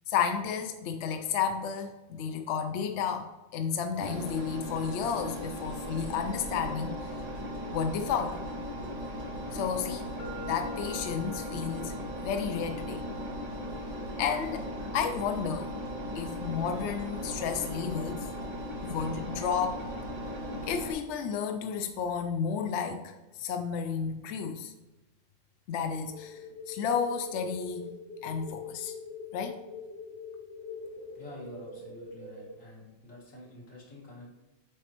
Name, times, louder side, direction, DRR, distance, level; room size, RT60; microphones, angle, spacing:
voice 1, 0.1-6.9 7.7-8.4 9.5-10.1 10.4-11.9 12.2-13.0 14.2-14.7 14.9-15.7 16.1-18.3 18.8-19.8 20.6-24.7 25.7-27.9 28.2-28.9 29.3-29.6, left 7 dB, 70° left, 6 dB, 0.8 m, -32 dB
Engine, 4.0-20.9, equal, 70° right, 1.7 m, -37 dB
sound 1, 10.2-18.1, left 3 dB, 40° left, 1.1 m, -50 dB
sound 2, 26.0-32.5, left 4 dB, 35° right, 2.4 m, -44 dB
voice 2, 31.1-34.3, left 2 dB, 90° left, -5 dB, 2.3 m, -48 dB
8.1 x 4.3 x 3.0 m, 1.1 s
omnidirectional pair, 1.3 m